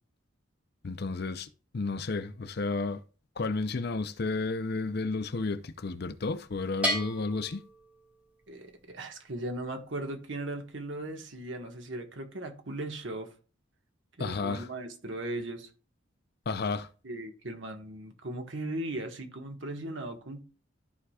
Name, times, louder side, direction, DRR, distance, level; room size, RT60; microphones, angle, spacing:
voice 1, 0.8-1.5 1.7-3.0 3.4-7.6 14.2-14.7 16.5-16.9, left 3 dB, 55° left, 0.6 m, -32 dB
Bell, 6.8-8.5, equal, 5° right, 3.3 m, -34 dB
voice 2, 8.5-13.3 14.2-15.7 17.0-20.4, right 1 dB, 70° right, 1.5 m, -38 dB
13.5 x 4.8 x 2.4 m
head